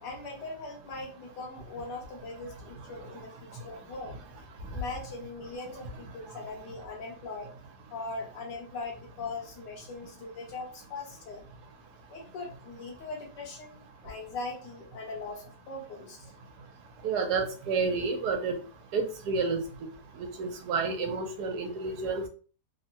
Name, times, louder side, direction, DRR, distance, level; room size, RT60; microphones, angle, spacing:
voice 1, 0.0-4.2 4.7-7.5 7.9-11.5 12.1-16.3, left 3 dB, 85° left, 0 dB, 1.5 m, -40 dB
voice 2, 17.0-18.6 18.9-19.6 20.2-22.3, right 4 dB, 75° right, 4 dB, 1.2 m, -30 dB
3.5 x 2.1 x 2.8 m, 0.37 s
omnidirectional pair, 1.8 m